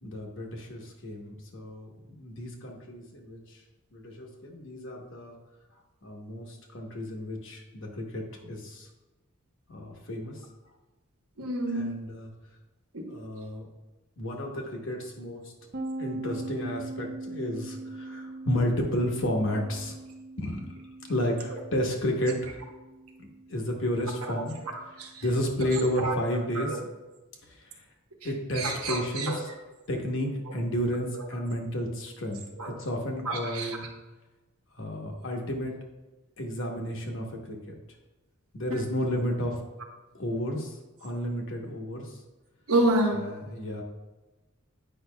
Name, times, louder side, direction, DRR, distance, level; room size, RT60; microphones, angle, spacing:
voice 1, 0.0-3.6 3.9-5.4 6.0-8.9 9.7-10.4 11.7-12.3 13.1-13.7 14.2-15.5 16.0-20.0 20.4-20.7 21.1-22.6 23.2-24.6 25.2-26.8 27.6-27.8 28.2-29.5 29.9-32.4 32.7-33.9 34.8-35.7 36.4-37.6 38.5-39.6 40.1-42.1 43.1-43.8, equal, 60° left, 1 dB, 1.0 m, -32 dB
voice 2, 11.4-11.9 12.9-13.1 21.5-21.6 24.2-24.3 25.0-25.2 25.7-26.2 26.5-26.8 28.5-29.4 30.5-30.6 32.6-32.7 33.2-33.8 42.7-43.2, right 2 dB, 90° right, 1 dB, 1.2 m, -28 dB
sound 1, 15.7-25.2, right 2 dB, 45° right, 0.5 m, -41 dB
8.7 x 5.4 x 2.2 m, 1.1 s
head